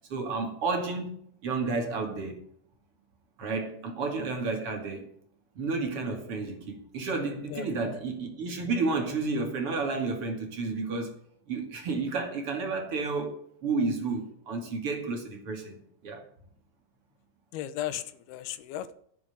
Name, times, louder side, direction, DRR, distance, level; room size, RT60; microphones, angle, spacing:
voice 1, 0.1-1.1 1.4-2.4 3.4-5.1 5.6-11.2 11.5-16.2, right 3 dB, 40° right, 2.7 m, -31 dB
voice 2, 7.5-8.0 17.5-18.9, left 12 dB, 85° left, 2.9 m, -36 dB
11.5 x 7.4 x 8.8 m
omnidirectional pair, 4.4 m